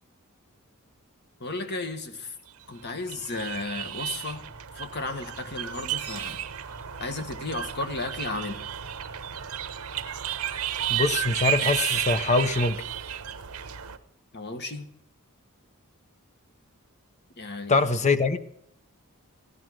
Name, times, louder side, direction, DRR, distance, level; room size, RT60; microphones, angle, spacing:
voice 1, 1.4-2.3 2.7-4.4 4.7-6.4 7.0-8.6 14.3-14.9 17.4-17.7, left 2 dB, 50° left, 7 dB, 1.6 m, -34 dB
sound 1, 2.9-14.0, right 10 dB, 75° right, 0.9 m, -32 dB
voice 2, 10.9-12.8 17.7-18.4, left 3 dB, 30° left, 11 dB, 0.7 m, -23 dB
16.0 x 11.0 x 6.2 m, 0.74 s
head